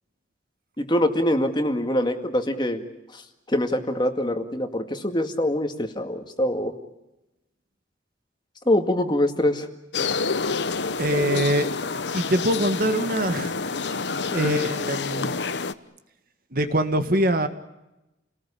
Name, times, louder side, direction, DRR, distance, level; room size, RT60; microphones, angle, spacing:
voice 1, 0.8-2.8 3.1-3.2 3.5-6.7 8.7-9.7 14.4-14.5, left 1 dB, 25° left, 6 dB, 2.0 m, -24 dB
sound 1, 9.9-15.7, left 4 dB, 70° left, 1.0 m, -28 dB
voice 2, 11.0-11.7 12.1-13.5 14.3-15.3 16.5-17.5, right 1 dB, 50° right, 8 dB, 1.8 m, -23 dB
29.5 x 19.0 x 8.7 m, 0.96 s
head